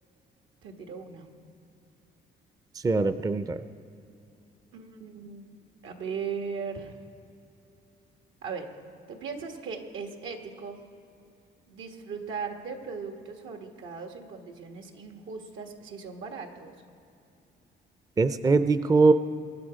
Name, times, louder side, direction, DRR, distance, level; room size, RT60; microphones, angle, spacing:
voice 1, 0.6-1.3 4.7-5.5 5.8-7.0 8.4-8.7 9.1-10.8 11.7-16.7, right 5 dB, 80° right, 4 dB, 1.5 m, -38 dB
voice 2, 2.8-3.6 18.2-19.1, right 3 dB, 20° right, 11 dB, 0.5 m, -21 dB
22.5 x 9.8 x 5.0 m, 2.8 s
cardioid pair, 90°, 20 cm